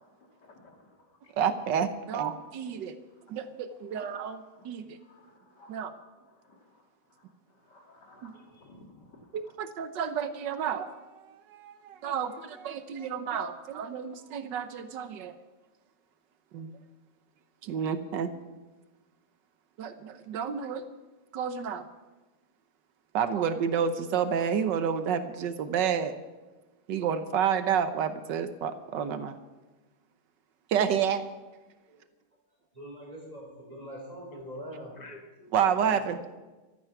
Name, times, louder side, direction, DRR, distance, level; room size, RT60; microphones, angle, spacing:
voice 1, 0.4-0.8 5.1-5.7 6.5-6.6 7.7-8.8 9.1-9.2 35.0-35.5, left 2 dB, 70° left, 2 dB, 2.9 m, -53 dB
voice 2, 1.4-3.0 3.3-4.8 5.7-5.9 8.2-8.3 9.3-15.3 16.5-16.8 17.6-18.3 19.8-20.8 21.3-21.9 23.1-26.1 26.9-29.4 30.7-31.2 35.5-36.2, right 7 dB, 80° right, 11 dB, 1.6 m, -30 dB
voice 3, 32.7-35.0, equal, 20° right, -2 dB, 4.7 m, -42 dB
15.0 x 13.0 x 5.9 m, 1.2 s
omnidirectional pair, 1.9 m